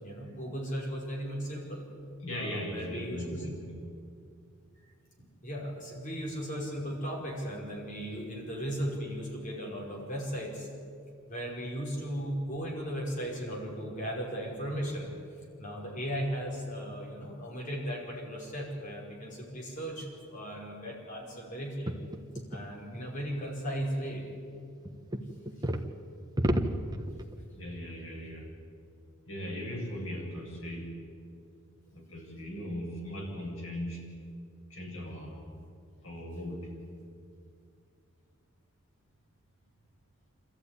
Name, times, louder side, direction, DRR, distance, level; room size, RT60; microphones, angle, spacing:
voice 1, 0.0-1.9 2.3-3.4 5.2-10.7 11.3-15.1 15.4-21.9 22.5-24.2, equal, 35° left, -2 dB, 5.1 m, -36 dB
voice 2, 2.2-3.8 27.5-28.5 29.3-30.9 31.9-34.0 34.7-35.4 36.0-36.7, equal, 65° left, -2 dB, 7.4 m, -38 dB
sound 1, 21.9-22.7 24.9-25.9 26.4-27.4, equal, 20° right, 1.3 m, -31 dB
26.5 x 14.5 x 10.0 m, 2.3 s
head